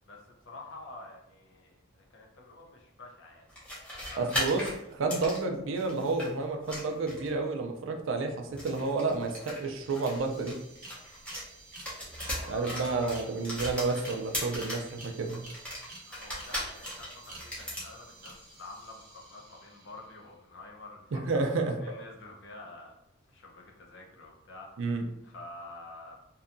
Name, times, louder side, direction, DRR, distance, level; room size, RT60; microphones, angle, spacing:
voice 1, 0.0-3.5 3.8-4.3 12.1-13.1 16.0-23.0 23.3-26.2, left 2 dB, 60° left, 0 dB, 0.6 m, -48 dB
sound 1, 3.5-6.3 6.6-7.4 8.5-11.5 11.7-14.9 15.3-17.9, equal, 5° left, 0.7 m, -38 dB
voice 2, 4.2-4.6 4.9-10.6 12.5-15.5 21.1-21.8 24.8-25.0, right 3 dB, 65° right, 4 dB, 0.4 m, -30 dB
sound 2, 9.1-9.2 9.4-20.2, right 2 dB, 45° right, 0.8 m, -50 dB
2.7 x 2.2 x 2.5 m, 0.82 s
head